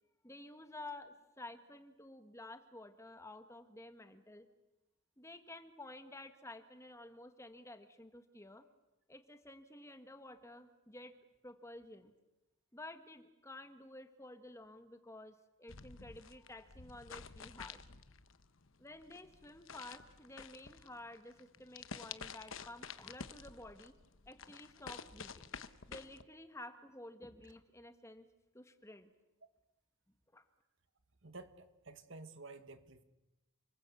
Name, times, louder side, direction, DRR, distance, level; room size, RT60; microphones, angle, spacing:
voice 1, 0.2-4.5 5.2-8.6 9.1-11.1 11.4-12.1 12.7-17.8 18.8-23.9 24.3-25.5 25.9-28.3 28.5-29.1 30.3-30.4, left 2 dB, 15° left, 8 dB, 1.3 m, -52 dB
sound 1, 15.7-26.2, left 6 dB, 65° left, 1.1 m, -51 dB
voice 2, 31.2-33.0, right 3 dB, 60° right, 10 dB, 1.9 m, -52 dB
29.0 x 21.0 x 8.3 m, 1.0 s
head